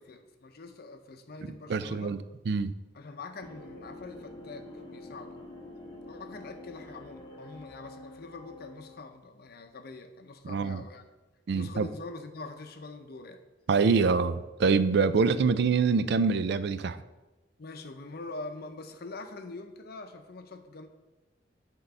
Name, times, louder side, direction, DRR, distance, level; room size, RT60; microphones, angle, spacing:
voice 1, 0.0-2.1 2.9-5.4 6.1-11.0 11.5-13.4 17.6-20.9, left 3 dB, 60° left, 7 dB, 0.6 m, -44 dB
voice 2, 1.7-2.2 2.5-2.7 10.5-10.8 11.5-11.9 13.7-17.0, right 5 dB, 65° right, 13 dB, 0.4 m, -25 dB
sound 1, 3.4-9.1, left 2 dB, 25° left, 1.0 m, -47 dB
8.1 x 3.8 x 5.4 m, 1.1 s
head